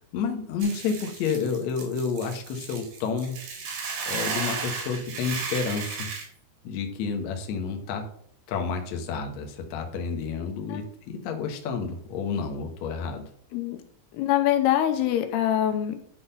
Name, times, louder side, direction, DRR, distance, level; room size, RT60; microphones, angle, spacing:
voice 1, 0.1-3.4 4.1-6.1 6.6-8.0 8.5-13.2, left 5 dB, 65° left, 4 dB, 1.9 m, -30 dB
Hiss / Boiling, 0.6-6.2, right 5 dB, 65° right, 3.7 m, -34 dB
voice 2, 14.1-16.1, left 11 dB, 90° left, 7 dB, 2.8 m, -24 dB
10.5 x 4.0 x 5.5 m, 0.62 s
omnidirectional pair, 4.6 m